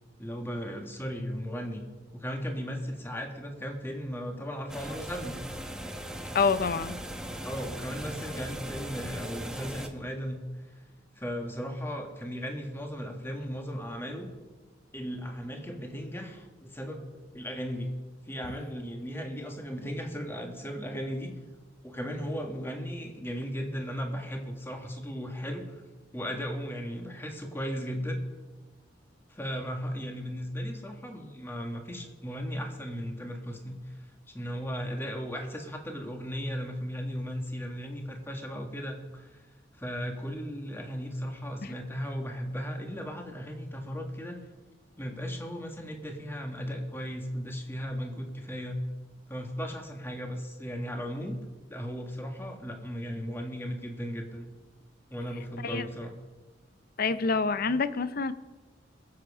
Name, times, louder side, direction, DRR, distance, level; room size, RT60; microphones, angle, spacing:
voice 1, 0.2-1.8 2.1-5.4 7.4-10.4 10.7-10.8 11.2-14.3 14.9-17.1 17.3-17.9 18.3-21.3 21.8-25.7 26.1-28.2 29.3-33.9 34.3-39.3 39.8-44.4 45.0-48.8 49.3-51.4 51.7-54.5 55.1-56.1, equal, 15° left, 3 dB, 1.7 m, -36 dB
sound 1, 4.7-9.9, equal, 5° right, 1.0 m, -38 dB
voice 2, 6.3-7.0 41.6-41.7 55.6-55.9 57.0-58.3, left 4 dB, 50° left, 14 dB, 0.6 m, -27 dB
21.5 x 7.7 x 4.9 m, 1.2 s
head